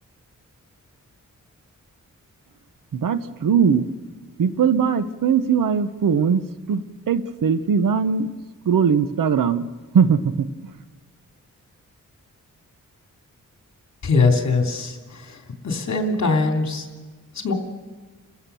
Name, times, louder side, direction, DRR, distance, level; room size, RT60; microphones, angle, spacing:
voice 1, 2.9-3.8 4.4-8.3 8.6-9.7 9.9-10.5, right 6 dB, 85° right, 12 dB, 1.0 m, -20 dB
voice 2, 14.0-16.9 17.3-17.5, left 3 dB, 60° left, 3 dB, 3.1 m, -22 dB
29.5 x 15.5 x 7.0 m, 1.4 s
wide cardioid pair, 135°, 32 cm